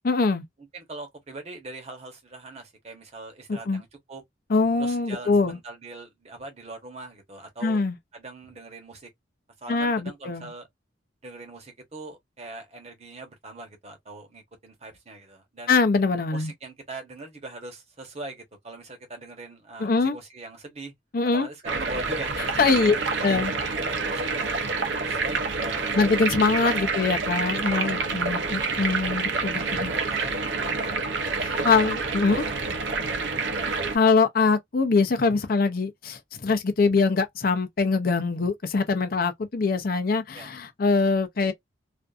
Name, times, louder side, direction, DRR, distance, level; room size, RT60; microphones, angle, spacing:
voice 1, 0.0-0.4 3.5-3.8 4.5-5.6 7.6-8.0 9.7-10.5 15.7-16.5 19.8-20.2 21.1-21.5 22.6-23.0 23.2-23.5 25.9-29.9 31.4-32.5 33.7-41.5, left 4 dB, 50° left, 0.5 m, -23 dB
voice 2, 0.7-4.2 4.8-7.9 8.1-9.1 9.6-10.7 11.2-15.8 16.3-20.9 21.3-24.7 25.0-26.0 26.7-26.9 27.7-28.1 29.6-31.0 31.5-31.9 32.3-33.2 40.3-40.5, right 2 dB, 35° right, 0.9 m, -42 dB
sound 1, 21.6-34.0, right 4 dB, 70° right, 0.6 m, -28 dB
2.5 x 2.5 x 2.3 m
head